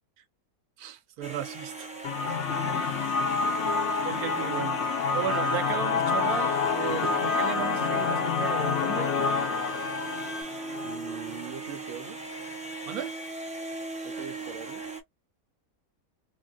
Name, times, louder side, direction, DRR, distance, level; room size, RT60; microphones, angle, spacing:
voice 1, 0.8-1.9 3.0-3.1 4.0-4.8 5.1-9.1 12.8-13.1, right 11 dB, 85° right, 1.1 m, -35 dB
sound 1, 1.2-15.0, right 3 dB, 5° right, 0.6 m, -39 dB
sound 2, 2.0-11.7, left 5 dB, 60° left, 0.8 m, -28 dB
Bowed string instrument, 5.3-10.4, left 2 dB, 85° left, 1.3 m, -40 dB
voice 2, 10.8-12.2 14.0-14.8, right 7 dB, 65° right, 0.8 m, -42 dB
3.4 x 2.2 x 2.4 m
omnidirectional pair, 1.5 m